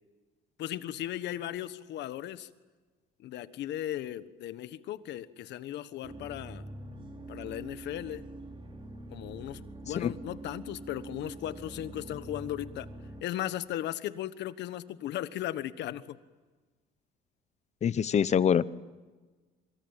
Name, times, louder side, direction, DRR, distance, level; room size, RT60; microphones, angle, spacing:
voice 1, 0.6-2.5 3.2-6.6 7.3-8.2 9.1-12.9 13.2-16.2, left 12 dB, 65° left, 14 dB, 1.3 m, -37 dB
sound 1, 6.0-13.2, right 2 dB, 25° right, 3.9 m, -45 dB
voice 2, 17.8-18.7, left 8 dB, 35° left, 17 dB, 0.9 m, -24 dB
26.5 x 24.0 x 8.9 m, 1.3 s
cardioid pair, 115°, 19 cm